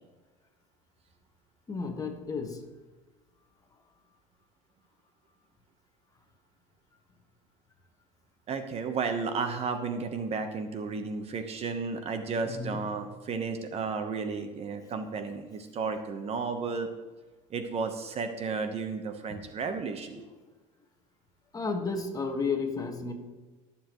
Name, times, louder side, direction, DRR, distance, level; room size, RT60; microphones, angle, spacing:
voice 1, 1.7-2.6 12.4-12.8 20.1-20.2 21.5-23.1, left 4 dB, 20° left, 4 dB, 1.6 m, -32 dB
voice 2, 8.5-16.9 17.5-20.2, right 4 dB, 40° right, 7 dB, 1.1 m, -33 dB
18.5 x 7.3 x 3.1 m, 1.3 s
supercardioid pair, 120°, 17 cm